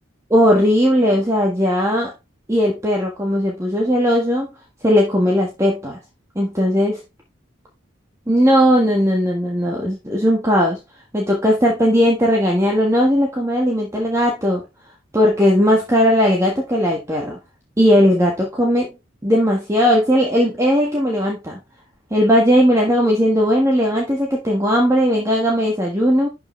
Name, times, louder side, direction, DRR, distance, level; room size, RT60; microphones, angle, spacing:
voice 1, 0.3-2.1 2.5-4.5 4.8-6.0 6.3-7.0 8.3-10.8 11.1-14.6 15.1-17.4 17.8-18.9 19.2-21.6 22.1-26.3, equal, 15° right, 1.6 m, -17 dB
11.5 x 5.0 x 3.3 m
head